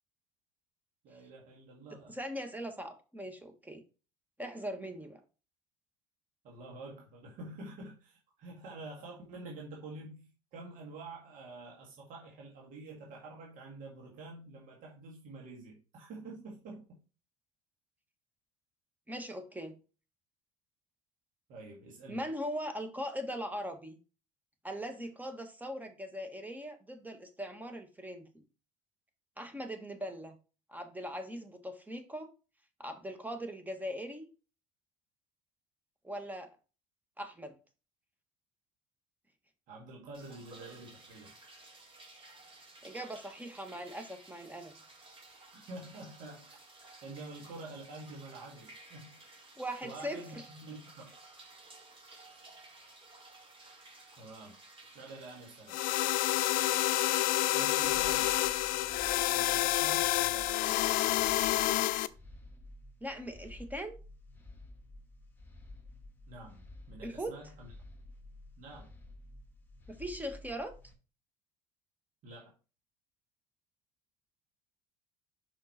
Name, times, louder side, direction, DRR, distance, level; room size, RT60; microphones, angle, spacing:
voice 1, 1.0-2.2 6.4-16.8 21.5-22.2 39.7-41.3 45.5-46.6 47.0-49.2 49.8-51.1 54.2-54.6 54.9-55.8 57.5-58.3 59.3-60.6 66.3-67.7 68.6-68.9 72.2-72.5, right 2 dB, 60° right, 1.9 m, -48 dB
voice 2, 2.1-3.8 4.4-5.2 19.1-19.7 22.1-24.0 24.6-28.4 29.4-30.4 30.7-32.3 32.8-34.3 36.0-36.5 37.2-37.5 42.8-44.7 49.6-50.4 63.0-64.0 67.0-67.4 69.9-70.7, equal, 10° right, 1.4 m, -40 dB
sound 1, 40.1-58.5, right 2 dB, 35° right, 2.5 m, -55 dB
sound 2, 55.7-62.1, left 16 dB, 60° left, 0.4 m, -29 dB
sound 3, 57.8-70.9, left 1 dB, 10° left, 1.8 m, -52 dB
5.6 x 4.3 x 4.3 m
hypercardioid pair, 70°, 16 cm